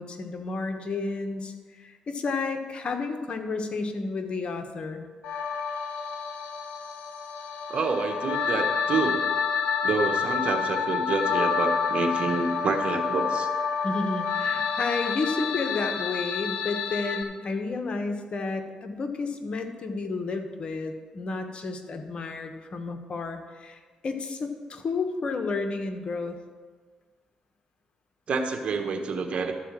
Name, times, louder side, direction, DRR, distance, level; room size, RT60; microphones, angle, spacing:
voice 1, 0.0-5.0 13.8-26.4, left 3 dB, 50° left, 6 dB, 1.2 m, -31 dB
sound 1, 5.2-17.2, left 6 dB, 85° left, 0.9 m, -28 dB
voice 2, 7.7-9.2 9.8-13.5 28.3-29.5, right 4 dB, 55° right, 5 dB, 1.4 m, -28 dB
12.5 x 4.8 x 7.5 m, 1.5 s
cardioid pair, 80°, 2 cm